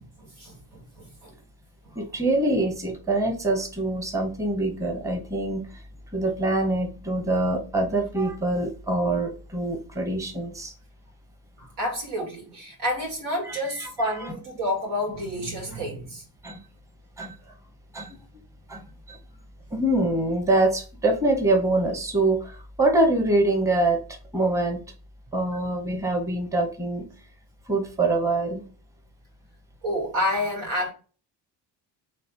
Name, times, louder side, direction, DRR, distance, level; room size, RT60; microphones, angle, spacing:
voice 1, 0.0-1.3 11.6-16.2 29.8-30.9, left 1 dB, 85° right, 2.3 m, -29 dB
voice 2, 1.9-5.8 6.1-10.7 13.4-13.9 14.2-14.3 16.4-16.6 17.2-17.3 17.9-18.2 18.7-18.8 19.1-19.2 19.7-24.0 24.3-24.8 25.3-27.1 27.7-28.6, right 2 dB, 5° right, 1.0 m, -24 dB
3.4 x 3.1 x 4.4 m
cardioid pair, 100°, 43 cm